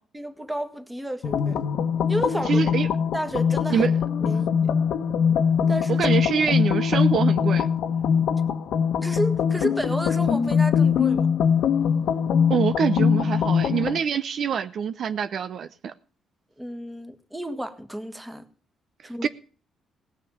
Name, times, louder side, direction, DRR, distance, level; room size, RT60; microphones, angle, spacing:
voice 1, 0.1-1.6 2.1-2.8 3.1-3.9 4.3-4.7 5.7-6.1 9.0-11.3 16.6-18.4 19.0-19.3, right 1 dB, 10° right, 1.7 m, -31 dB
sound 1, 1.2-14.0, left 7 dB, 75° left, 1.2 m, -22 dB
voice 2, 2.5-2.9 3.7-3.9 5.9-7.7 12.5-15.9 19.2-19.3, right 7 dB, 60° right, 0.7 m, -25 dB
18.0 x 6.6 x 7.1 m
cardioid pair, 90°, 0 cm